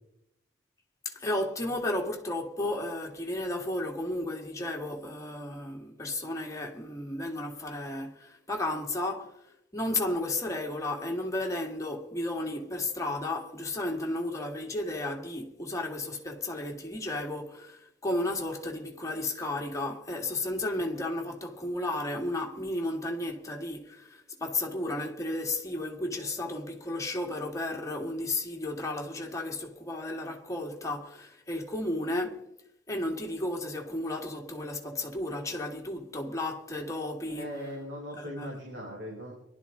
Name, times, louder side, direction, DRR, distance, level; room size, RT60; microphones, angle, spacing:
voice 1, 1.1-9.4 9.7-32.4 32.9-37.6 38.2-38.5, left 1 dB, 15° left, 2.0 m, -33 dB
voice 2, 37.4-39.3, equal, 75° right, 4.9 m, -39 dB
24.0 x 12.0 x 3.9 m
head